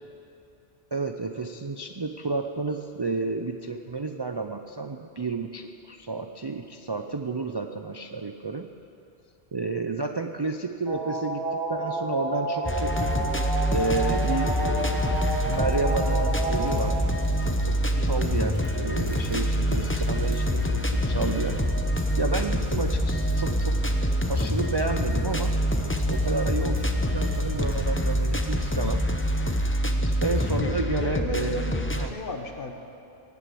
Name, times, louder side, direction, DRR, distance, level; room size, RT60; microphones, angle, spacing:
voice 1, 0.9-8.7 9.5-13.1 13.7-15.1 15.4-17.1 17.6-21.6 22.2-23.8 24.3-25.6 26.1-26.9 27.1-29.0 30.2-31.6 32.0-32.1, right 3 dB, 35° right, 5 dB, 0.4 m, -31 dB
sound 1, 10.9-16.8, right 2 dB, 65° right, 3.0 m, -30 dB
sound 2, 12.7-32.1, equal, 15° left, 0.6 m, -26 dB
sound 3, 14.8-28.4, right 2 dB, 10° right, 2.1 m, -37 dB
voice 2, 17.9-18.3 29.8-30.1 30.5-32.7, left 3 dB, 55° left, 4 dB, 1.3 m, -35 dB
18.0 x 8.3 x 7.6 m, 2.7 s
omnidirectional pair, 1.1 m